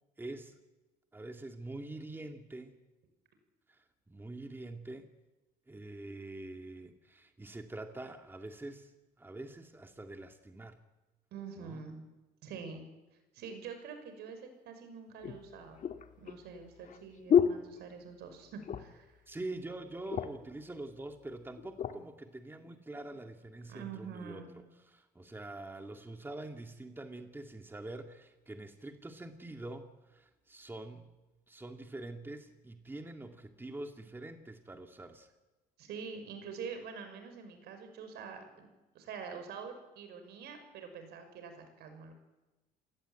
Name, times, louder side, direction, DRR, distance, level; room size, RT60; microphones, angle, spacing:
voice 1, 0.2-0.6 1.1-2.8 3.7-5.1 5.7-8.9 9.2-10.8 11.6-11.8 19.3-31.1 31.5-35.3, right 2 dB, 10° right, 5 dB, 2.1 m, -45 dB
voice 2, 11.3-12.0 12.4-12.8 13.3-15.8 16.2-19.2 23.7-24.5 35.8-38.7 38.9-42.1, right 6 dB, 75° right, 7 dB, 6.0 m, -45 dB
sound 1, 14.3-14.4 15.2-18.3 18.6-19.1 19.4-19.5 19.8-20.5 21.2-22.0 22.6-22.8, left 8 dB, 50° left, 1.9 m, -32 dB
28.5 x 18.0 x 9.0 m, 1.1 s
cardioid pair, 110°, 17 cm